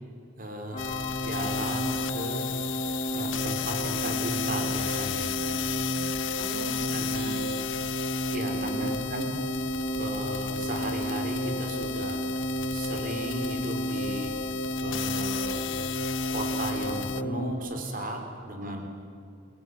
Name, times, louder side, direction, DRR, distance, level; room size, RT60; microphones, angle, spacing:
voice 1, 0.4-0.8 1.2-2.5 3.1-5.3 6.9-7.4 8.3-9.3 9.9-12.2 12.7-14.3 14.8-15.6 16.3-18.9, right 1 dB, 45° right, 4 dB, 4.8 m, -35 dB
sound 1, 0.7-17.5, right 1 dB, 35° left, 2.0 m, -32 dB
sound 2, 0.8-17.2, left 11 dB, 85° left, 0.9 m, -35 dB
voice 2, 6.4-7.7 8.4-8.9 18.6-18.9, right 1 dB, 70° right, 5 dB, 3.2 m, -42 dB
28.0 x 18.0 x 9.9 m, 2.5 s
head